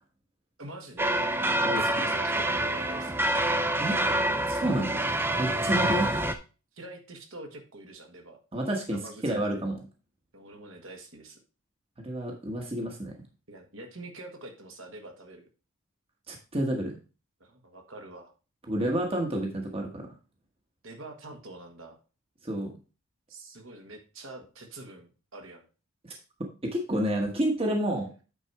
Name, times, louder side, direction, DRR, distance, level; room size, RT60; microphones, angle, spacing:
voice 1, 0.6-1.2 1.7-3.2 5.4-6.1 6.7-8.4 8.9-9.6 10.3-11.4 13.5-15.5 17.4-18.3 20.8-22.0 23.3-25.6, right 2 dB, 65° right, 2 dB, 1.6 m, -45 dB
sound 1, 1.0-6.3, right 1 dB, 10° right, 0.4 m, -27 dB
voice 2, 4.5-5.0 5.4-6.1 8.5-9.8 12.0-13.1 16.3-17.0 18.7-20.1 22.4-22.7 26.0-26.2 26.7-28.1, right 1 dB, 25° right, 1 dB, 1.2 m, -29 dB
8.9 x 4.2 x 4.6 m, 0.34 s
head